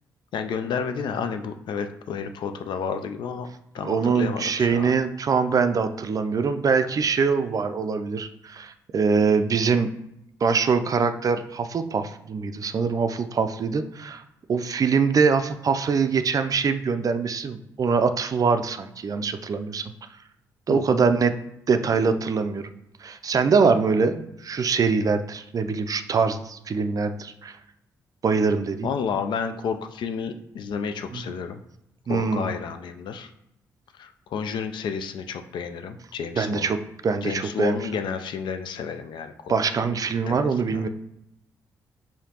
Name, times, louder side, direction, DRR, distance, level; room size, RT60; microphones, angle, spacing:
voice 1, 0.3-3.5 3.7-4.9 20.7-21.0 28.8-31.6 32.1-33.3 34.0-36.7 37.2-39.9 40.3-40.8, left 6 dB, 60° left, 8 dB, 0.4 m, -31 dB
voice 2, 3.8-9.9 10.4-14.2 14.5-19.8 20.7-22.7 23.0-27.6 28.2-28.9 31.1-31.2 32.1-32.5 36.3-36.8 37.0-37.8 39.5-40.9, right 5 dB, 40° right, 9 dB, 0.4 m, -23 dB
4.9 x 2.8 x 2.8 m, 0.82 s
hypercardioid pair, 45°, 9 cm